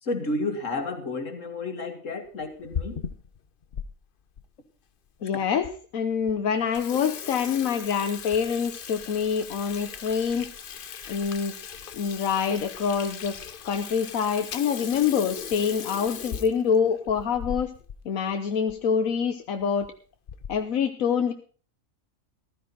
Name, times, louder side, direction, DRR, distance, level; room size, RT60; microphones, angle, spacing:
voice 1, 0.0-3.0, left 2 dB, 70° left, 6 dB, 2.3 m, -31 dB
Water tap faucet / Sink (filling or washing), 2.4-3.9 4.4-4.5 5.2-5.3 5.6-5.7 6.1-6.3 6.6-18.0 18.3-18.4 18.7-18.8 19.6-19.9 20.3-20.7, left 7 dB, 50° left, 0.8 m, -38 dB
voice 2, 5.2-10.5 11.1-11.5 11.9-13.4 13.6-17.7 18.0-19.9 20.5-21.3, left 7 dB, 90° left, 6 dB, 1.3 m, -26 dB
15.0 x 14.0 x 3.9 m, 0.39 s
omnidirectional pair, 1.4 m